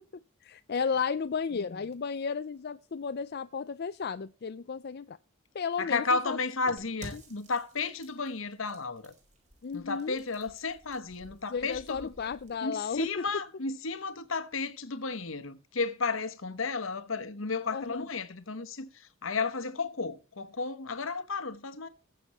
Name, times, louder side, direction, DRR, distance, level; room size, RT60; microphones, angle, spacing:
voice 1, 0.4-5.2 5.5-6.4 7.1-7.2 9.6-10.2 11.5-13.1 17.7-18.1, left 6 dB, 50° left, 0.5 m, -33 dB
voice 2, 1.5-1.9 5.8-9.1 9.7-12.1 12.6-21.9, left 4 dB, 70° left, 1.1 m, -33 dB
sound 1, 6.8-12.6, right 1 dB, 35° right, 4.8 m, -53 dB
20.0 x 7.0 x 3.0 m
head